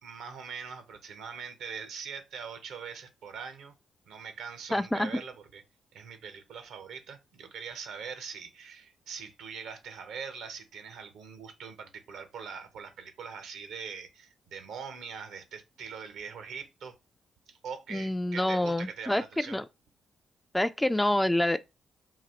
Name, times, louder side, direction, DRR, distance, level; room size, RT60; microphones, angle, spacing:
voice 1, 0.0-3.7 4.1-5.6 5.9-16.9 17.5-19.6, right 6 dB, 75° right, 0.7 m, -42 dB
voice 2, 4.7-5.2 17.9-19.7 20.5-21.6, left 1 dB, 10° left, 0.3 m, -27 dB
3.9 x 2.4 x 4.3 m
supercardioid pair, 50°, 0 cm